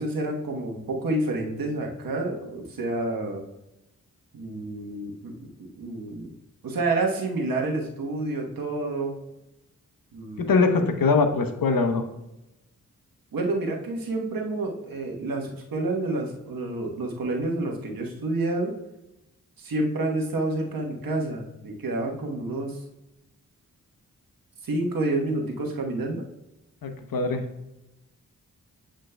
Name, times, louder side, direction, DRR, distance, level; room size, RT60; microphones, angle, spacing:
voice 1, 0.0-3.4 4.3-5.3 5.8-6.3 6.6-9.2 10.1-10.7 13.3-18.7 19.6-22.8 24.6-26.2, right 2 dB, 75° right, 1 dB, 1.2 m, -29 dB
voice 2, 10.4-12.0 26.8-27.4, left 4 dB, 75° left, 6 dB, 0.9 m, -22 dB
8.7 x 5.1 x 2.2 m, 0.92 s
cardioid pair, 45°, 34 cm